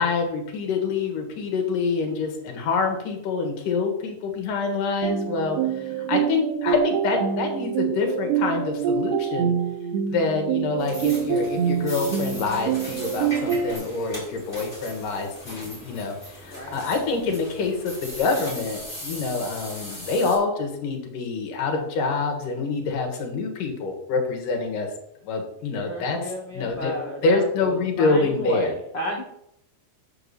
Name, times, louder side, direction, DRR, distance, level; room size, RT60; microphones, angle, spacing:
voice 1, 0.0-9.5 10.1-24.9 25.2-26.9 27.2-28.7, left 4 dB, 60° left, 3 dB, 2.9 m, -26 dB
voice 2, 2.1-2.6 5.6-6.2 16.5-16.8 25.7-29.2, left 1 dB, 75° left, -2 dB, 1.0 m, -34 dB
sound 1, 5.0-13.7, right 8 dB, 90° right, 3.0 m, -26 dB
sound 2, 10.8-20.4, equal, 10° left, 4.1 m, -39 dB
7.3 x 6.0 x 7.0 m, 0.75 s
omnidirectional pair, 4.8 m